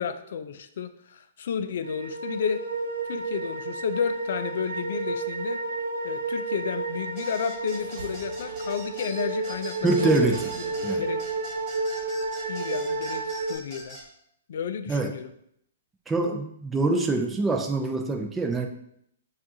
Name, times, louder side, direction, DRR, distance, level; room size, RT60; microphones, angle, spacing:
voice 1, 0.0-2.6 3.1-5.6 6.0-10.3 10.5-11.2 12.5-14.0 14.5-15.3, left 7 dB, 65° left, 10 dB, 0.4 m, -32 dB
sound 1, 1.8-13.5, right 3 dB, 80° right, 0.5 m, -31 dB
sound 2, 7.2-14.1, right 1 dB, 25° right, 1.3 m, -43 dB
sound 3, 7.8-12.1 13.3-13.4, right 3 dB, 65° right, 1.0 m, -43 dB
voice 2, 9.8-10.4 10.8-11.0 14.9-15.1 16.1-18.7, right 3 dB, 10° right, 3 dB, 0.5 m, -25 dB
7.2 x 2.5 x 2.7 m, 0.73 s
hypercardioid pair, 150°, 0 cm